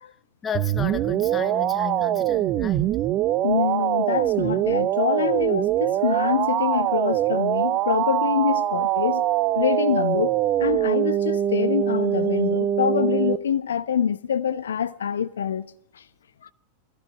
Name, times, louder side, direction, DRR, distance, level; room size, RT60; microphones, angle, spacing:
voice 1, 0.4-3.0, left 7 dB, 20° left, 0.9 m, -33 dB
sound 1, 0.5-13.4, right 12 dB, 35° right, 0.7 m, -23 dB
voice 2, 3.4-9.3 9.5-15.7 15.9-16.0 16.4-16.5, left 8 dB, 65° left, 1.0 m, -25 dB
20.0 x 15.0 x 9.3 m
figure-of-eight pair, 90°, 0 cm